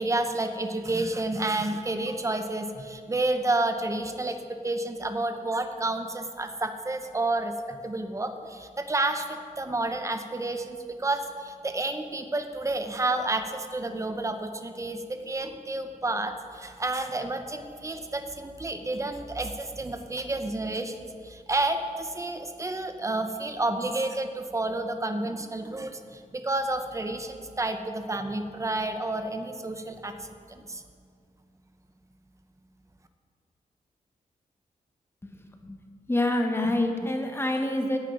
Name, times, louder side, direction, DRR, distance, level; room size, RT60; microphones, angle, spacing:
voice 1, 0.0-30.8, right 2 dB, 20° right, 7 dB, 0.9 m, -30 dB
voice 2, 35.2-35.8 36.1-38.0, left 1 dB, 15° left, 3 dB, 1.4 m, -27 dB
10.5 x 7.4 x 9.2 m, 2.2 s
wide cardioid pair, 115°, 15 cm